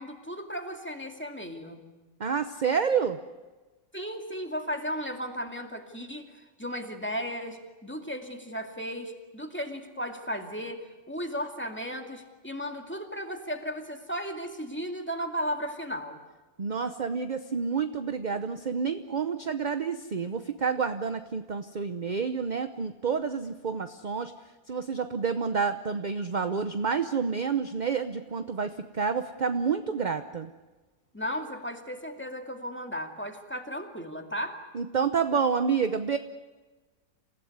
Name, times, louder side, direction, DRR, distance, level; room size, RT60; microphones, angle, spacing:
voice 1, 0.0-1.8 3.9-16.2 31.1-34.6, equal, 5° left, 4 dB, 2.2 m, -35 dB
voice 2, 2.2-3.2 16.6-24.3 24.7-30.5 34.7-36.2, right 6 dB, 40° right, 9 dB, 0.8 m, -29 dB
28.0 x 16.0 x 9.5 m, 1.2 s
omnidirectional pair, 1.6 m